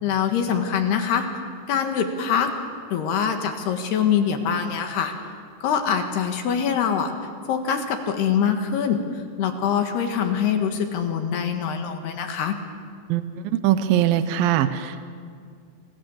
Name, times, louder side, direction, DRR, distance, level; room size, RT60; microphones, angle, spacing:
voice 1, 0.0-1.3 1.7-2.5 2.9-5.1 5.6-7.1 7.5-9.0 9.4-12.6, left 7 dB, 70° left, 5 dB, 3.5 m, -24 dB
voice 2, 13.1-15.0, right 11 dB, 75° right, 11 dB, 2.2 m, -22 dB
30.0 x 24.5 x 7.2 m, 2.2 s
omnidirectional pair, 5.1 m